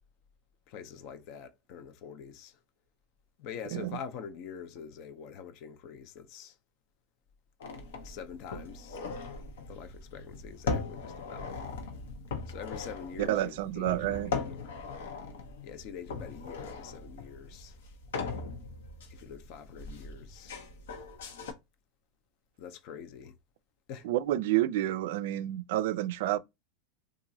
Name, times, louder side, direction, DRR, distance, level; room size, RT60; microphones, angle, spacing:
voice 1, 0.7-2.6 3.4-6.6 8.0-9.0 9.7-11.5 12.5-14.8 15.6-17.8 19.1-20.6 22.6-23.3 23.9-24.1, left 7 dB, 55° left, 0.5 m, -45 dB
sound 1, 7.6-21.5, left 4 dB, 85° left, 0.8 m, -39 dB
voice 2, 13.2-14.3 24.0-26.4, right 14 dB, 70° right, 0.3 m, -29 dB
2.9 x 2.4 x 2.6 m
supercardioid pair, 125°, 0 cm